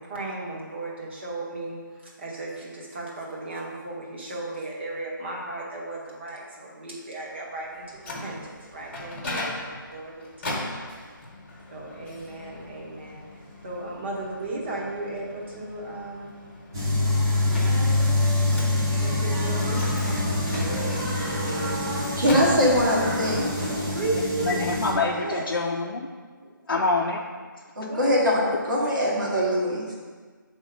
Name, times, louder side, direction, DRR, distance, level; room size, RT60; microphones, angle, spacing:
voice 1, 0.0-10.8 11.7-13.2 13.6-16.3 19.0-20.9 21.2-21.9 23.9-24.7 25.1-25.5 26.4-26.9 27.8-28.2, right 2 dB, 30° right, -3 dB, 1.1 m, -35 dB
Microwave oven, 7.7-23.1, left 1 dB, 35° left, 1.1 m, -39 dB
sound 1, 16.7-24.9, left 2 dB, 10° right, 0.3 m, -25 dB
voice 2, 22.2-23.7 27.7-29.9, equal, 60° right, -4 dB, 1.6 m, -22 dB
voice 3, 24.4-26.1 26.7-27.2, left 3 dB, 70° left, -1 dB, 0.5 m, -25 dB
4.8 x 3.7 x 5.4 m, 1.5 s
hypercardioid pair, 170°, 11 cm